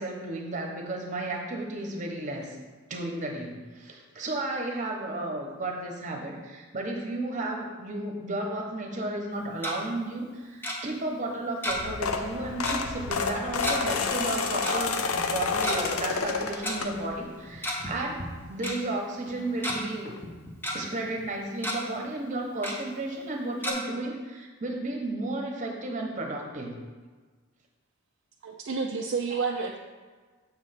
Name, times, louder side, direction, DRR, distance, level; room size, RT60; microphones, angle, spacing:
voice 1, 0.0-2.6 2.9-18.2 18.5-20.1 20.7-26.7, right 2 dB, 35° right, 1 dB, 1.0 m, -33 dB
Tick-tock, 9.3-9.8 10.6-10.8 11.6-12.0 12.2-12.3 12.6-12.8 13.6-13.8 14.6-14.8 15.5-15.8 16.6-16.7 17.5-17.9 18.2-18.3 18.6-18.8 19.3-19.8 20.2-20.8 21.2-21.3 21.6-21.8 22.6-22.8 23.6-23.7, equal, 10° left, 0.8 m, -31 dB
sound 1, 11.7-17.3 17.8-18.0 19.3-19.4 19.6-19.7 20.0-20.2, left 4 dB, 75° left, 0.6 m, -30 dB
voice 2, 28.4-29.8, right 5 dB, 55° right, 0 dB, 0.4 m, -30 dB
7.2 x 3.2 x 5.8 m, 1.4 s
head